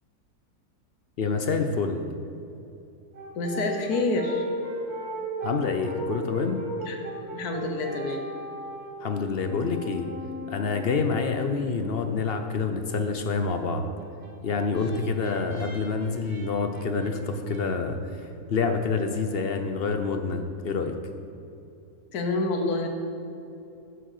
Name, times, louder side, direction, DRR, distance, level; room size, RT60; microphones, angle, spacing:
voice 1, 1.2-2.1 5.4-6.6 9.0-10.1 10.5-13.9 14.4-18.0 18.5-20.9, left 4 dB, 55° left, 6 dB, 0.7 m, -27 dB
Brass instrument, 3.1-11.5 14.0-17.6, right 1 dB, 85° right, 2.3 m, -37 dB
voice 2, 3.3-4.5 6.8-7.0 7.3-8.2 22.1-22.9, left 2 dB, 80° left, 3 dB, 1.5 m, -27 dB
9.3 x 6.3 x 6.5 m, 2.8 s
omnidirectional pair, 1.6 m